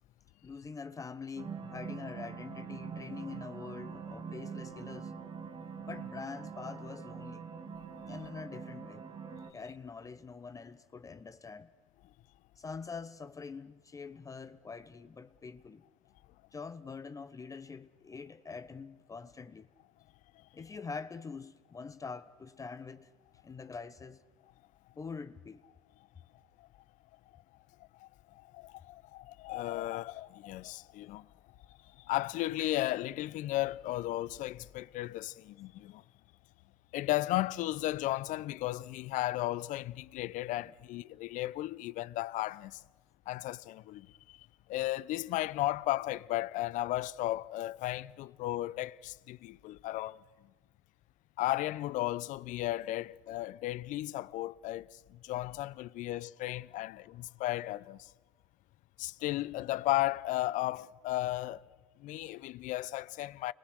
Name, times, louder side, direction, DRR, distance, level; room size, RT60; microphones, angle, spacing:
voice 1, 0.4-5.1 5.9-7.5 8.1-9.0 9.5-11.7 12.6-15.8 16.5-19.7 20.5-23.1 23.4-24.2 25.0-25.6 40.6-40.7, left 5 dB, 20° left, 0.9 m, -44 dB
sound 1, 1.4-9.5, right 6 dB, 30° right, 2.7 m, -44 dB
voice 2, 28.0-31.3 32.0-36.0 36.9-42.8 43.3-50.2 51.4-58.1 59.0-61.6 62.0-63.5, left 16 dB, 45° left, 0.7 m, -35 dB
29.5 x 22.0 x 6.4 m
hypercardioid pair, 85°, 18 cm